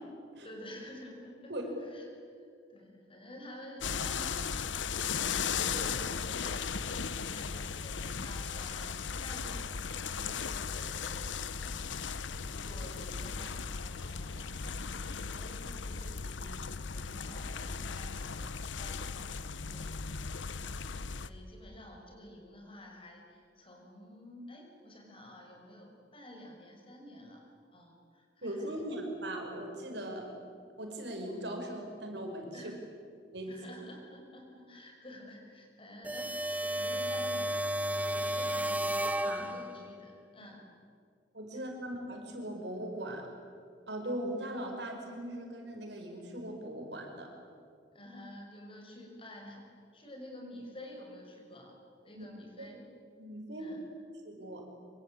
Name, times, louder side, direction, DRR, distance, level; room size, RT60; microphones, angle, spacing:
voice 1, 0.4-20.8 21.2-27.4 27.7-28.8 32.5-32.8 33.5-40.6 41.5-41.6 47.9-51.8 52.0-52.9 53.6-53.8, left 1 dB, 30° left, 1 dB, 6.2 m, -50 dB
sound 1, 3.8-21.3, left 6 dB, 85° left, 1.0 m, -37 dB
voice 2, 28.4-30.3 30.8-32.7 33.3-33.6 39.2-39.5 41.3-43.3 43.9-47.3 52.2-52.3 52.6-52.7 53.2-53.7 54.2-54.6, right 1 dB, 65° right, 2 dB, 5.8 m, -39 dB
sound 2, 36.0-39.9, right 1 dB, 10° right, 0.9 m, -33 dB
26.0 x 25.5 x 9.0 m, 2.3 s
head